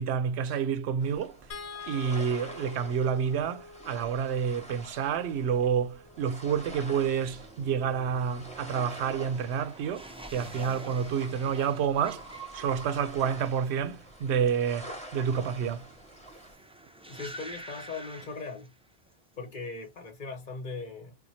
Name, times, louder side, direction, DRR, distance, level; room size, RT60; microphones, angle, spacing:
voice 1, 0.0-1.4 1.9-12.3 12.5-15.9, right 7 dB, 85° right, 0.8 m, -29 dB
sound 1, 1.0-16.5, right 1 dB, 5° left, 1.1 m, -47 dB
sound 2, 1.5-7.8 9.4-9.5 9.9-10.0, left 4 dB, 85° left, 1.0 m, -47 dB
sound 3, 6.0-19.1 19.4-20.0, right 2 dB, 10° right, 0.4 m, -49 dB
voice 2, 17.1-18.7 19.4-21.1, left 3 dB, 50° left, 1.0 m, -39 dB
4.5 x 2.2 x 2.7 m
omnidirectional pair, 1.1 m